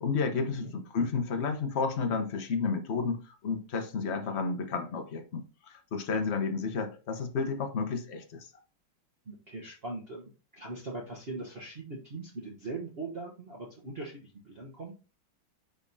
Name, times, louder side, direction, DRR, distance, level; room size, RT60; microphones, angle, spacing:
voice 1, 0.0-8.5, left 4 dB, 45° left, 0.9 m, -31 dB
voice 2, 9.3-15.0, right 2 dB, 40° right, 1.0 m, -41 dB
9.8 x 3.5 x 2.7 m
omnidirectional pair, 2.2 m